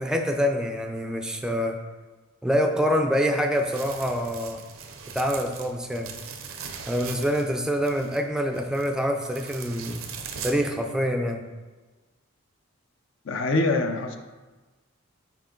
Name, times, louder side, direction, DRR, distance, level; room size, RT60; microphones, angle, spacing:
voice 1, 0.0-1.8 2.4-4.6 5.1-6.2 6.9-10.0 10.4-11.4, equal, 5° right, 3 dB, 0.3 m, -26 dB
sound 1, 3.5-10.5, right 6 dB, 80° right, 0.7 m, -40 dB
voice 2, 13.3-14.2, left 2 dB, 65° left, 5 dB, 0.5 m, -24 dB
5.7 x 4.4 x 3.8 m, 1.2 s
head